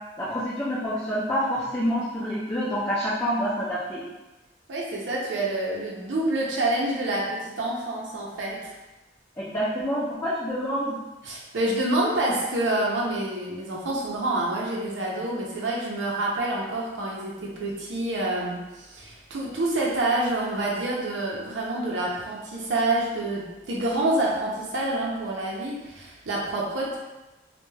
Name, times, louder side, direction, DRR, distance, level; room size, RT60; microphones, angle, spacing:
voice 1, 0.2-4.0 9.4-11.0, equal, 15° left, -8 dB, 0.4 m, -27 dB
voice 2, 4.7-8.7 11.2-27.0, right 2 dB, 85° right, -4 dB, 0.5 m, -27 dB
2.2 x 2.1 x 3.1 m, 1.1 s
head